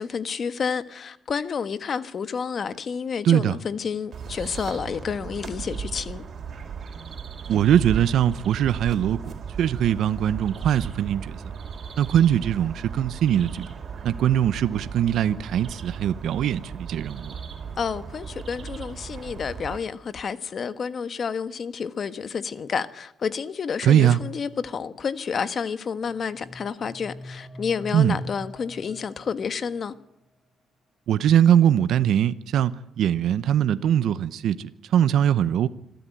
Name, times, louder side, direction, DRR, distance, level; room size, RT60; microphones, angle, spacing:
voice 1, 0.0-6.2 17.8-29.9, left 6 dB, 50° left, 1.4 m, -30 dB
voice 2, 3.2-3.6 7.5-11.4 12.0-13.7 14.0-17.4 23.8-24.2 27.9-28.2 31.1-35.7, right 10 dB, 75° right, 0.8 m, -21 dB
sound 1, 4.1-19.8, right 6 dB, 50° right, 4.4 m, -36 dB
sound 2, 26.0-30.0, left 1 dB, 30° left, 7.0 m, -41 dB
26.5 x 13.5 x 9.1 m
cardioid pair, 90°, 0 cm